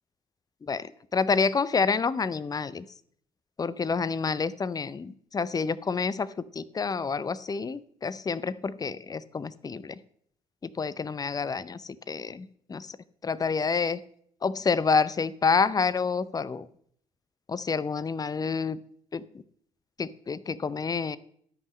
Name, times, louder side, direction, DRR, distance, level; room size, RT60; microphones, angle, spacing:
voice 1, 0.6-2.8 3.6-10.0 10.8-12.9 13.2-14.0 14.4-16.7 17.5-18.8 19.1-19.2 20.0-21.2, left 5 dB, 25° left, 18 dB, 0.5 m, -28 dB
13.0 x 5.3 x 5.3 m, 0.65 s
figure-of-eight pair, 45°, 16 cm